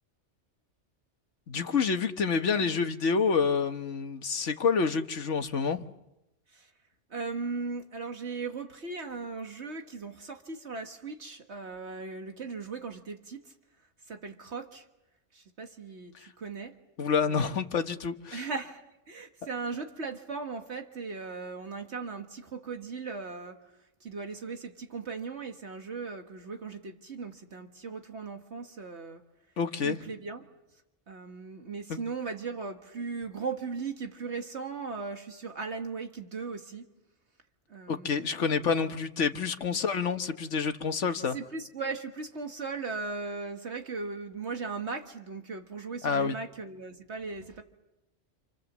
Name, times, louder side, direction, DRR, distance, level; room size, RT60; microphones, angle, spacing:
voice 1, 1.5-5.8 17.0-18.5 29.6-30.0 31.9-32.0 37.9-41.4 46.0-46.3, left 5 dB, 70° left, 1.6 m, -28 dB
voice 2, 7.1-13.5 14.1-14.9 15.3-16.8 17.2-17.6 18.3-18.8 19.1-23.6 24.0-29.2 29.8-30.5 31.1-36.9 37.7-38.6 39.7-39.8 41.3-47.6, right 4 dB, 65° right, 1.8 m, -38 dB
28.5 x 28.0 x 7.3 m
omnidirectional pair, 1.3 m